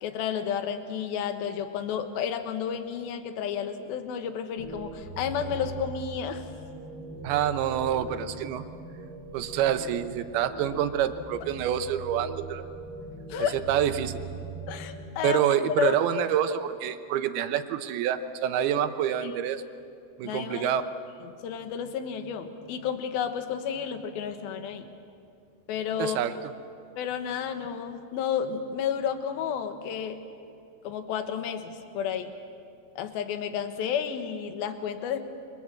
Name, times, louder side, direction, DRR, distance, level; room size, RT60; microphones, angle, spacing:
voice 1, 0.0-6.5 13.3-13.6 14.7-15.4 15.8-16.3 19.2-19.3 20.2-20.7 21.2-24.9 25.7-26.2 27.0-30.2 30.8-32.3 33.0-35.2, left 8 dB, 75° left, 7 dB, 3.1 m, -31 dB
sound 1, 4.6-15.1, right 3 dB, 25° left, 4.2 m, -41 dB
voice 2, 7.2-8.6 9.3-12.6 13.5-14.2 15.2-19.6 20.2-20.8 26.0-26.3, right 10 dB, 80° right, 9 dB, 2.9 m, -27 dB
28.5 x 23.5 x 7.6 m, 2.5 s
omnidirectional pair, 4.5 m